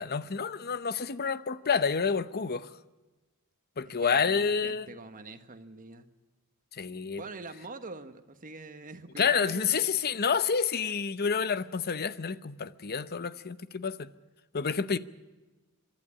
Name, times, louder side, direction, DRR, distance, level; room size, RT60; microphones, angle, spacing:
voice 1, 0.0-2.7 3.8-4.9 6.7-7.2 9.2-14.1 14.5-15.0, left 6 dB, 45° left, 0.8 m, -29 dB
voice 2, 4.0-6.1 7.2-9.7, right 3 dB, 40° right, 1.4 m, -44 dB
24.5 x 12.0 x 9.9 m
head